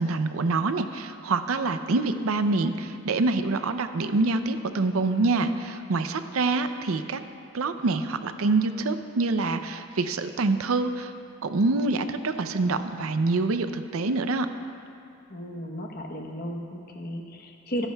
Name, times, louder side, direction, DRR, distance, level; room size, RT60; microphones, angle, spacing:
voice 1, 0.0-7.2 7.5-11.1 11.4-14.5, right 3 dB, 85° right, 9 dB, 0.6 m, -26 dB
voice 2, 15.3-17.9, equal, 45° left, 2 dB, 1.0 m, -34 dB
25.0 x 10.0 x 2.3 m, 2.5 s
head